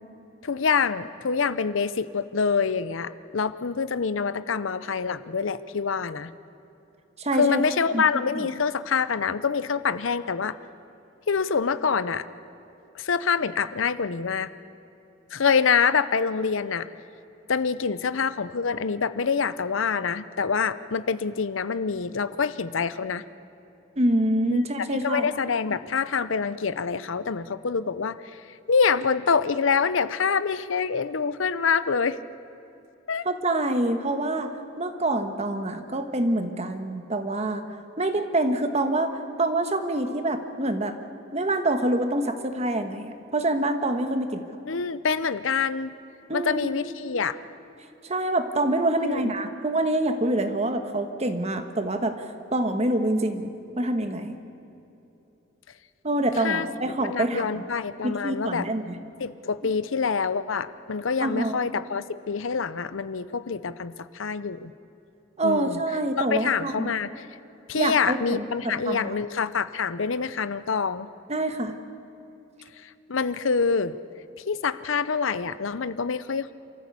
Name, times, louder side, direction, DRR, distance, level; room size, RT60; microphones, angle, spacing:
voice 1, 0.4-6.3 7.3-10.6 11.3-12.3 12.9-14.5 15.3-16.9 17.5-23.2 24.5-24.6 24.9-28.4 28.7-32.2 33.1-33.3 44.7-45.9 46.3-47.4 49.0-49.3 56.4-56.7 57.0-58.7 59.2-64.7 65.4-65.8 66.1-67.3 67.7-71.1 72.8-73.9 74.5-76.5, left 5 dB, 85° left, 15 dB, 0.7 m, -26 dB
voice 2, 7.2-7.6 7.9-8.0 24.0-25.3 33.2-34.5 34.8-37.7 38.0-40.9 41.3-44.4 46.3-46.7 48.0-52.2 52.5-54.3 56.0-57.7 58.0-59.0 61.2-61.6 65.4-66.9 67.8-69.2 71.3-71.7, right 1 dB, 35° right, 7 dB, 1.4 m, -26 dB
27.5 x 14.0 x 8.3 m, 2.9 s
head